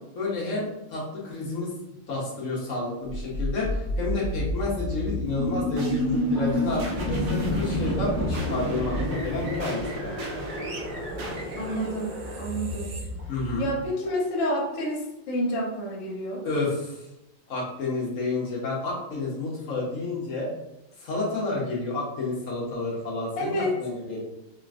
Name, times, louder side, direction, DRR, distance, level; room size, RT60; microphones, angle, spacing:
voice 1, 0.1-1.7 2.1-10.1 13.3-13.7 16.4-17.1 17.5-20.5 21.0-24.2, left 3 dB, 45° left, -4 dB, 1.1 m, -30 dB
sound 1, 3.1-14.1, left 1 dB, 65° right, 1.0 m, -29 dB
voice 2, 11.6-12.9 13.6-16.4 23.4-23.8, equal, 65° left, -3 dB, 1.5 m, -29 dB
4.2 x 2.9 x 2.4 m, 0.89 s
omnidirectional pair, 2.3 m